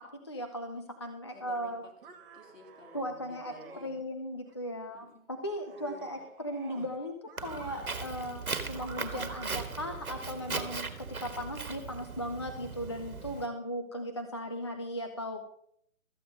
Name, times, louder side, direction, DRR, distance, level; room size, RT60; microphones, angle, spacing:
voice 1, 0.0-1.8 2.9-7.1 7.4-15.6, equal, 20° left, 5 dB, 0.4 m, -37 dB
voice 2, 1.3-4.0 4.9-5.3 5.7-6.3, left 3 dB, 65° left, -1 dB, 3.6 m, -54 dB
sound 1, 2.0-3.9 4.5-5.0 5.4-7.0 7.3-8.0 8.5-10.9, right 6 dB, 40° right, 1.6 m, -52 dB
Walk footsteps, 7.4-13.5, right 4 dB, 85° right, 1.6 m, -38 dB
13.5 x 8.3 x 5.1 m, 0.67 s
figure-of-eight pair, 140°, 42 cm